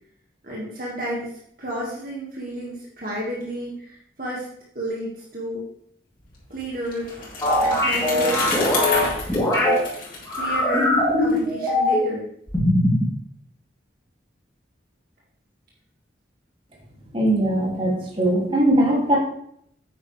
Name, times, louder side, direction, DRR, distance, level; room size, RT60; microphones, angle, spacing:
voice 1, 0.4-1.3 1.6-4.5 4.7-5.6 6.5-7.2 7.6-8.5 9.5-9.8 10.3-12.3, equal, 50° right, -4 dB, 2.1 m, -32 dB
Bicycle, 6.3-11.4, left 3 dB, 50° left, 3.0 m, -30 dB
sound 1, 7.4-9.8 10.3-12.1 12.5-13.0, left 1 dB, 15° left, 3.3 m, -21 dB
voice 2, 17.1-19.2, right 1 dB, 30° right, -3 dB, 2.8 m, -20 dB
9.6 x 8.8 x 3.5 m, 0.68 s
head